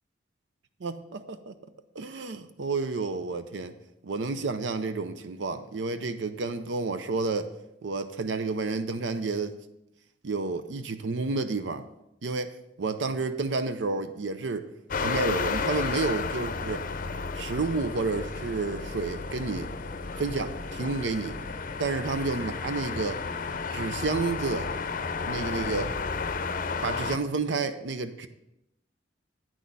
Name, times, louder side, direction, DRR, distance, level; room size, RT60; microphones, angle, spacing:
voice 1, 0.8-1.5 2.0-3.7 4.0-7.5 7.8-9.6 10.2-11.9 12.2-12.5 12.8-14.7 15.0-16.8 17.3-19.7 20.2-21.4 21.8-23.2 23.7-24.7 25.3-25.9 26.8-28.3, right 3 dB, 85° right, 10 dB, 0.6 m, -30 dB
sound 1, 14.9-27.2, left 4 dB, 50° left, 0.6 m, -32 dB
9.0 x 6.3 x 5.3 m, 0.85 s
head